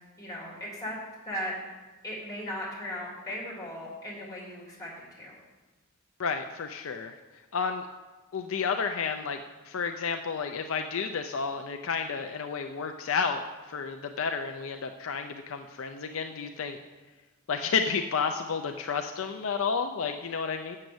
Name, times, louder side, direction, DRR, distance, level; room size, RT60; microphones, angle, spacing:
voice 1, 0.2-1.0 1.3-1.5 2.0-5.4, equal, 15° left, -4 dB, 3.1 m, -37 dB
voice 2, 6.2-7.2 7.5-7.9 8.3-9.4 9.7-13.4 13.7-16.8 17.5-20.8, left 5 dB, 65° left, 6 dB, 0.5 m, -31 dB
7.2 x 6.6 x 7.8 m, 1.2 s
head